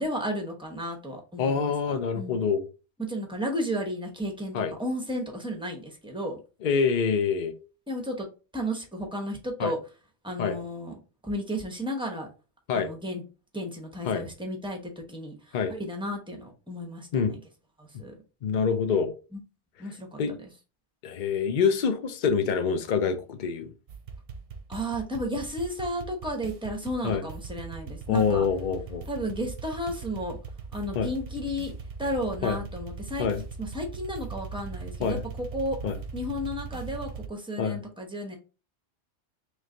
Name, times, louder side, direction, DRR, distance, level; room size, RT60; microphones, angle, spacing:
voice 1, 0.0-2.4 3.0-6.4 7.9-8.3 8.5-9.8 10.2-12.3 12.7-13.2 13.5-14.8 15.1-17.4 17.8-18.1 19.3-19.4 19.8-20.5 24.7-28.5 29.1-30.4 30.7-31.7 32.0-33.3 33.6-35.8 36.1-38.4, equal, 5° right, 2 dB, 0.8 m, -33 dB
voice 2, 1.4-2.6 4.5-4.7 6.6-7.5 9.6-9.7 10.4-10.6 12.7-12.9 14.0-14.3 15.5-15.7 17.1-17.3 18.4-19.1 20.2-20.3 21.0-23.7 27.0-27.2 28.1-29.1 30.9-31.1 32.4-32.6 33.2-33.4 35.0-35.2 35.8-36.0 37.6-37.8, left 6 dB, 50° left, 8 dB, 0.7 m, -26 dB
sound 1, 23.9-37.3, right 5 dB, 65° right, 0.8 m, -40 dB
3.3 x 3.1 x 3.7 m, 0.33 s
omnidirectional pair, 1.1 m